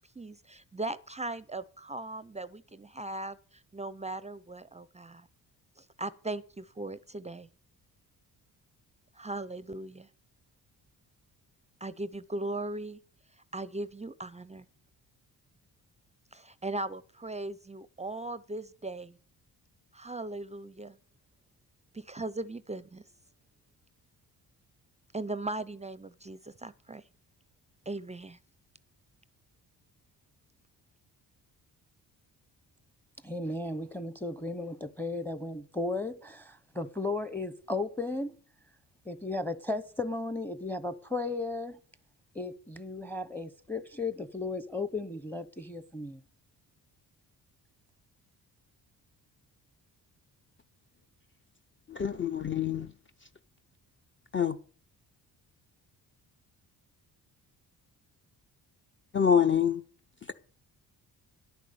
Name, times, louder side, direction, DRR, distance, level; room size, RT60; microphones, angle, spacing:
voice 1, 0.2-5.3 5.8-7.5 9.1-10.1 11.8-13.0 13.5-14.7 16.3-19.2 19.9-21.0 21.9-23.0 25.1-27.0 27.9-28.4, right 2 dB, 20° right, 0.5 m, -38 dB
voice 2, 33.2-38.3 39.0-41.8 42.3-46.2, left 2 dB, 5° left, 0.8 m, -35 dB
voice 3, 51.9-52.9 54.3-54.6 59.1-59.8, left 8 dB, 30° left, 0.6 m, -26 dB
11.0 x 9.2 x 6.8 m
cardioid pair, 95°, 39 cm